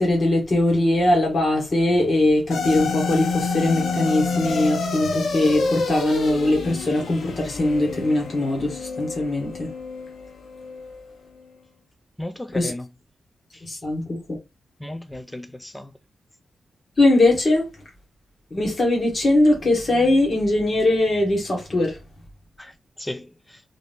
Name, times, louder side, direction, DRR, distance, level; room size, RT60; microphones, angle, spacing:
voice 1, 0.0-9.7 12.5-12.7 13.7-14.4 17.0-17.7 18.5-22.0, left 2 dB, 30° left, 1.6 m, -21 dB
sound 1, 2.5-11.0, left 4 dB, 90° left, 1.0 m, -28 dB
voice 2, 12.2-12.9 13.5-13.6 14.8-15.9 22.6-22.7 23.0-23.6, left 1 dB, 5° left, 0.3 m, -35 dB
3.7 x 2.8 x 3.4 m
wide cardioid pair, 160°, 0 cm